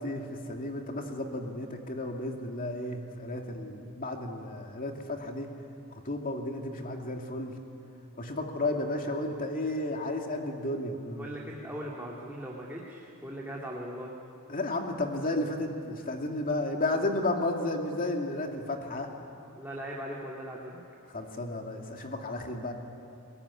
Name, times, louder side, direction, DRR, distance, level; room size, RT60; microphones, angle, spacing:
voice 1, 0.0-5.5 6.1-7.5 8.2-11.3 14.5-19.1 21.1-22.7, left 2 dB, 40° left, 2 dB, 2.5 m, -33 dB
voice 2, 11.2-14.1 19.5-20.8, equal, 10° right, -4 dB, 2.6 m, -39 dB
22.5 x 21.5 x 9.9 m, 2.6 s
head